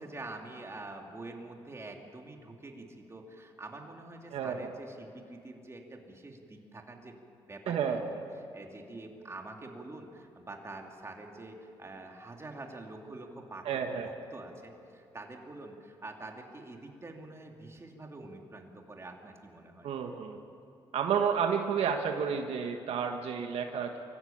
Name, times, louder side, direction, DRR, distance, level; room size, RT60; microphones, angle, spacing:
voice 1, 0.0-7.2 7.5-8.2 8.5-19.9, right 2 dB, 25° right, 2 dB, 3.0 m, -46 dB
voice 2, 4.3-4.7 7.7-8.0 13.6-14.1 19.8-20.4 20.9-24.0, right 7 dB, 75° right, 4 dB, 1.5 m, -31 dB
24.5 x 15.0 x 8.8 m, 2.7 s
cardioid pair, 90°, 10 cm